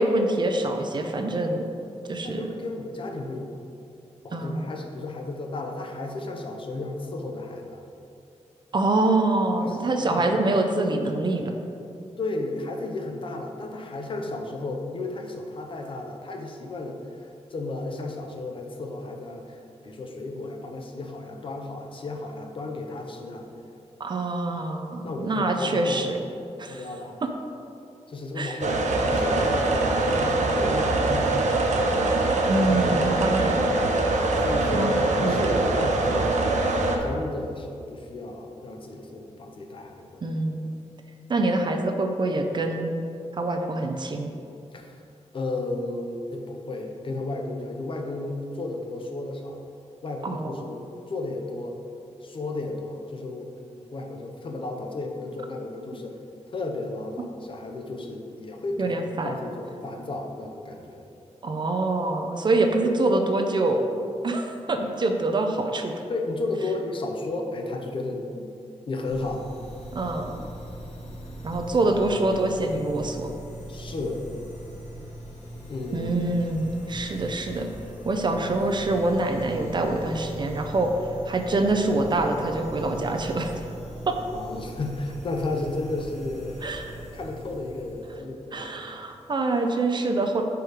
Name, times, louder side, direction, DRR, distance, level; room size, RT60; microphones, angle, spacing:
voice 1, 0.0-1.6 2.1-2.5 4.3-4.7 8.7-11.5 24.0-26.2 26.6-26.9 28.4-28.6 32.5-33.7 34.7-34.9 35.2-35.4 40.2-40.8 41.3-42.9 43.4-44.3 50.2-50.6 58.8-59.3 61.4-63.8 64.2-66.0 69.9-70.4 71.4-73.3 75.9-77.7 78.0-80.9 81.3-83.5 84.1-84.2 86.6-87.0 88.5-90.4, right 2 dB, 40° right, 4 dB, 0.4 m, -25 dB
voice 2, 2.2-3.5 4.2-7.8 9.6-10.3 12.2-23.5 25.0-26.1 26.7-27.2 28.1-31.5 32.7-33.0 34.4-36.5 37.0-40.2 44.7-45.0 45.3-49.6 50.0-51.8 52.2-56.2 56.5-59.0 59.2-61.0 66.1-68.5 68.9-69.4 73.7-74.2 75.7-76.3 84.3-86.7 87.1-88.7, left 2 dB, 45° left, 2 dB, 0.6 m, -33 dB
sound 1, 28.6-37.0, right 2 dB, 80° right, 0.6 m, -23 dB
sound 2, 69.0-88.2, right 1 dB, 75° left, 1.3 m, -40 dB
4.9 x 4.6 x 4.7 m, 2.6 s
wide cardioid pair, 175°, 12 cm